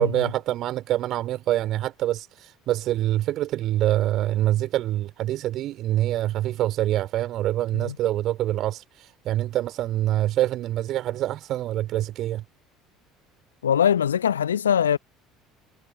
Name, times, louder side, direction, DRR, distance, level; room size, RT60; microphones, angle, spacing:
voice 1, 0.0-12.4, right 13 dB, 50° right, 3.2 m, -25 dB
voice 2, 13.6-15.0, left 8 dB, 75° left, 0.8 m, -22 dB
figure-of-eight pair, 60°, 0 cm